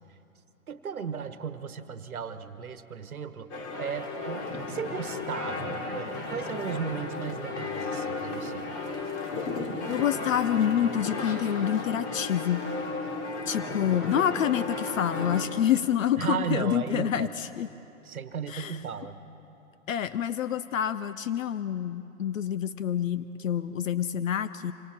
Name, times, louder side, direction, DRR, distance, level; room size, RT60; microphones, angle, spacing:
voice 1, 0.7-3.5 3.8-8.7 16.2-17.3 18.0-19.2, right 7 dB, 85° right, 11 dB, 1.2 m, -35 dB
sound 1, 3.5-15.5, left 3 dB, 35° left, 2.7 m, -34 dB
voice 2, 9.9-12.6 13.5-17.7 18.5-18.8 19.9-24.7, left 9 dB, 65° left, 14 dB, 0.7 m, -27 dB
26.0 x 25.5 x 4.4 m, 2.9 s
hypercardioid pair, 130°, 42 cm